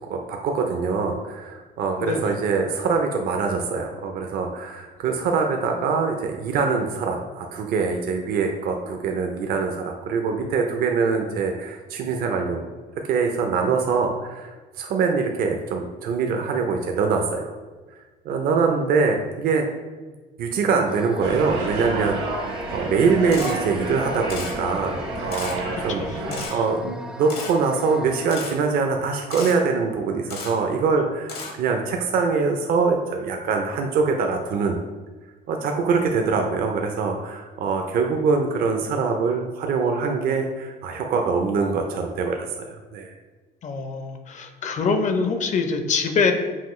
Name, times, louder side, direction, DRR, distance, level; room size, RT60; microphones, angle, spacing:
voice 1, 0.1-12.7 13.1-17.5 18.2-19.7 20.4-34.8 35.5-43.1, right 5 dB, 60° right, 3 dB, 0.5 m, -24 dB
voice 2, 2.0-2.4 13.7-13.8 18.4-18.8 25.7-26.6 43.6-46.3, left 4 dB, 45° left, 6 dB, 0.5 m, -25 dB
sound 1, 20.9-28.4, equal, 5° right, 0.4 m, -37 dB
sound 2, 21.2-26.5, right 2 dB, 85° right, 1.4 m, -31 dB
Camera, 23.3-23.5 24.3-24.5 25.3-25.5 26.3-26.5 27.3-27.5 28.3-28.5 29.3-29.5 30.3-30.5 31.3-31.5, left 4 dB, 70° left, 1.0 m, -33 dB
5.6 x 2.4 x 3.1 m, 1.3 s
cardioid pair, 110°, 17 cm